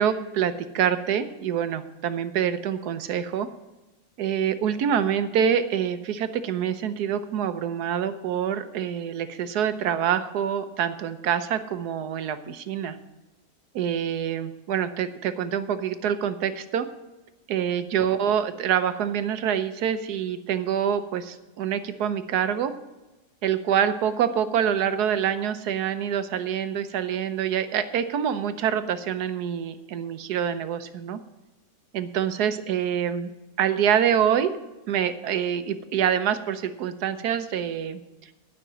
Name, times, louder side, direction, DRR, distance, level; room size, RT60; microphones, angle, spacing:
voice 1, 0.0-3.5 4.2-13.0 13.7-16.9 17.5-22.7 23.4-31.2 31.9-33.3 33.6-34.5 34.9-38.0, right 8 dB, 85° right, 11 dB, 1.3 m, -26 dB
12.0 x 5.9 x 7.5 m, 1.1 s
omnidirectional pair, 1.7 m